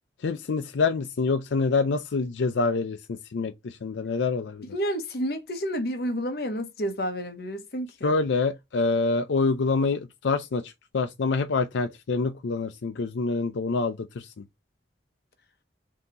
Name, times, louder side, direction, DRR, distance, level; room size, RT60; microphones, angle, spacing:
voice 1, 0.2-4.6 8.0-14.4, left 4 dB, 90° left, 0.5 m, -26 dB
voice 2, 4.7-8.1, equal, 55° left, 0.8 m, -30 dB
3.7 x 2.8 x 3.9 m
head